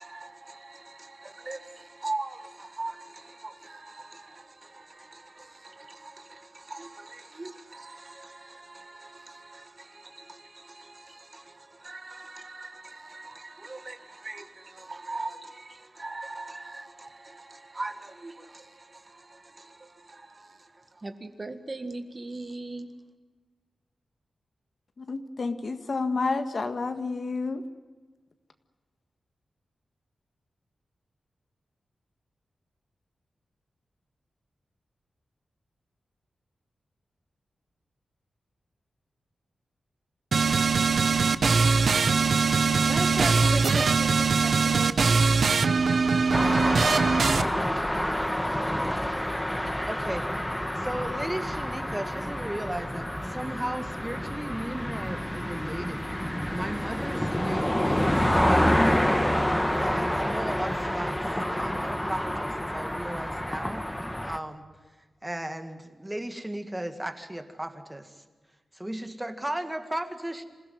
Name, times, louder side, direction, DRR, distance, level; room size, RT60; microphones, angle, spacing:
voice 1, 0.0-22.9, right 2 dB, 25° right, 1.7 m, -41 dB
voice 2, 25.0-27.6, left 3 dB, 45° left, 1.6 m, -30 dB
sound 1, 40.3-47.4, right 4 dB, 60° right, 1.0 m, -22 dB
voice 3, 42.8-45.0 49.8-59.2 59.8-63.9 64.2-64.7 65.2-68.2 68.7-70.5, right 1 dB, 10° right, 2.0 m, -36 dB
sound 2, 46.3-64.4, equal, 5° left, 1.3 m, -28 dB
27.0 x 16.5 x 9.4 m
wide cardioid pair, 135°, 0 cm